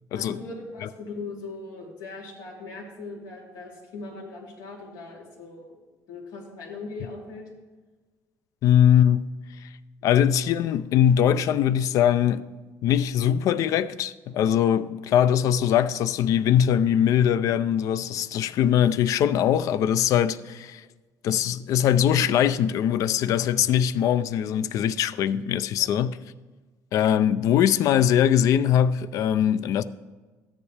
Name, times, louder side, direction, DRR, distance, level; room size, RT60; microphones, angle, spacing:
voice 1, 0.1-5.8 6.1-7.5 25.8-25.9, left 3 dB, 80° left, 3.0 m, -39 dB
voice 2, 8.6-9.3 10.0-12.5 12.8-20.8 21.2-26.2 26.9-29.8, left 9 dB, 60° left, 0.4 m, -21 dB
13.5 x 9.8 x 3.3 m
cardioid pair, 165°, 7 cm